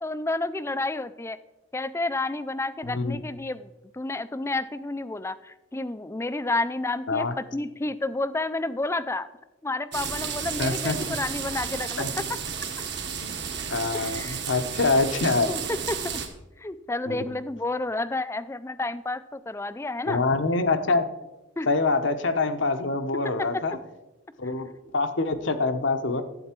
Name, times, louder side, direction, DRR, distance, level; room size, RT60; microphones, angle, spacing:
voice 1, 0.0-1.4 1.7-9.3 9.6-12.0 14.0-14.4 15.5-16.2 16.6-20.2 21.6-21.7 23.4-23.6, left 2 dB, 15° left, 14 dB, 0.4 m, -30 dB
voice 2, 2.9-3.2 7.1-7.3 10.6-11.0 12.0-12.1 13.2-13.4 13.7-15.5 17.1-17.3 20.0-21.1 21.7-23.8 24.4-26.2, left 3 dB, 65° left, 8 dB, 0.9 m, -25 dB
sound 1, 9.9-16.3, right 6 dB, 60° right, 1.4 m, -32 dB
12.0 x 8.4 x 4.4 m, 1.0 s
head